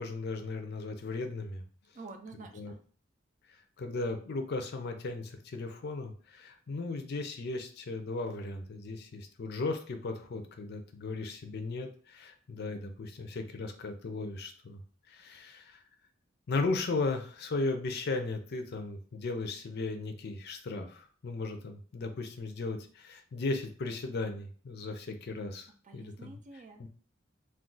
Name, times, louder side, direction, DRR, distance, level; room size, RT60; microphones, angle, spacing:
voice 1, 0.0-1.6 2.5-2.7 3.5-14.8 15.1-15.8 16.5-26.3 26.8-26.9, left 3 dB, 55° left, 6 dB, 0.5 m, -36 dB
voice 2, 1.9-2.8 25.8-26.9, right 3 dB, 40° right, 5 dB, 0.4 m, -48 dB
2.4 x 2.3 x 3.8 m, 0.42 s
head